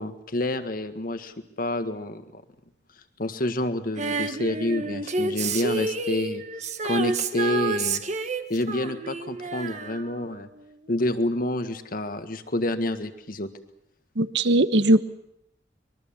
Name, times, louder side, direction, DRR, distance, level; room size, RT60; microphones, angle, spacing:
voice 1, 0.0-2.4 3.2-6.4 6.8-8.0 8.5-10.5 10.9-13.5, left 1 dB, 50° left, 9 dB, 1.7 m, -28 dB
Female singing, 4.0-10.6 10.9-11.0, right 3 dB, 40° right, 1.4 m, -29 dB
voice 2, 14.2-15.0, right 1 dB, 70° right, 13 dB, 1.1 m, -19 dB
24.5 x 22.0 x 7.3 m, 0.77 s
head